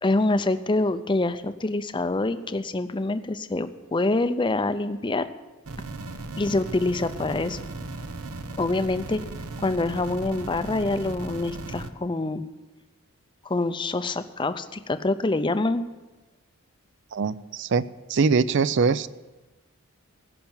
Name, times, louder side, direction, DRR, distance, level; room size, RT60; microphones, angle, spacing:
voice 1, 0.0-5.3 6.4-7.6 8.6-9.2 9.6-12.5 13.4-15.9, left 2 dB, 20° left, 11 dB, 0.5 m, -25 dB
sound 1, 5.6-11.9, right 2 dB, 85° right, 0.9 m, -37 dB
voice 2, 17.1-19.1, right 5 dB, 55° right, 17 dB, 0.4 m, -23 dB
16.0 x 5.8 x 8.8 m, 1.2 s
head